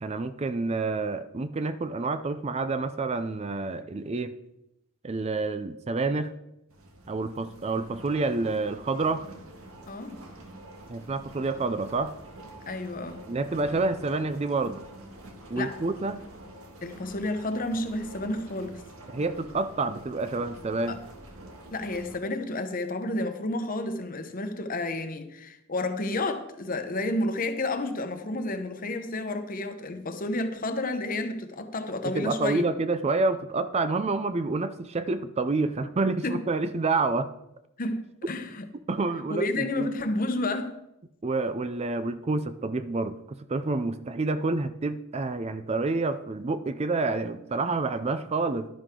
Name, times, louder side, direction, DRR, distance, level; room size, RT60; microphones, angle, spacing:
voice 1, 0.0-4.3 5.0-6.3 7.1-9.2 10.9-12.1 13.3-14.8 15.5-16.2 19.1-21.0 32.1-37.3 38.9-39.9 41.2-48.7, right 3 dB, 30° right, 0.4 m, -28 dB
sound 1, 6.7-22.2, right 1 dB, 85° right, 1.7 m, -47 dB
voice 2, 9.9-10.2 12.7-13.3 15.6-15.8 16.8-18.8 20.9-21.0 21.7-32.6 36.2-36.4 37.8-38.6 39.3-40.8, left 2 dB, 40° left, 1.0 m, -31 dB
11.5 x 10.0 x 3.8 m
head